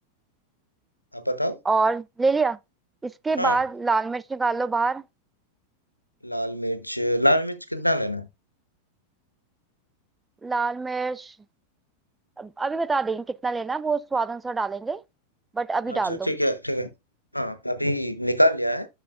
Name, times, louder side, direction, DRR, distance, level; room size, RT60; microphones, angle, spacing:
voice 1, 1.1-1.6 3.4-3.6 6.2-8.3 15.9-16.9 17.3-18.9, equal, 90° left, 0.8 m, -25 dB
voice 2, 1.7-2.6 3.0-5.0 10.4-11.3 12.4-15.0 15.5-16.3, right 4 dB, 10° right, 0.4 m, -25 dB
11.5 x 6.3 x 2.4 m
figure-of-eight pair, 90°, 0 cm